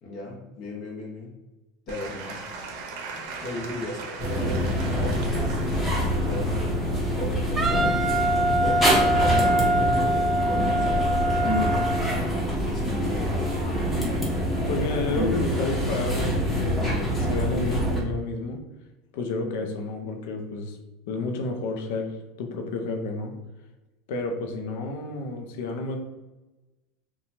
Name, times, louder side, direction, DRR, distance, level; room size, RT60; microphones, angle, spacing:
voice 1, 0.0-1.3 1.9-2.4 3.4-4.0 4.3-5.8 6.2-8.0 8.6-11.1 11.7-13.5, left 2 dB, 55° left, -2 dB, 1.0 m, -37 dB
Applause / Crowd, 1.9-8.2, right 3 dB, 70° right, 0.6 m, -39 dB
sound 1, 4.2-18.0, equal, 15° left, 1.0 m, -25 dB
Wind instrument woodwind instrument, 7.6-12.0, right 1 dB, 25° right, 0.3 m, -24 dB
voice 2, 13.9-18.6 19.1-20.8 21.1-23.3 24.1-26.0, left 3 dB, 75° left, 3 dB, 0.5 m, -31 dB
2.9 x 2.2 x 2.7 m, 1.1 s
supercardioid pair, 115°, 0 cm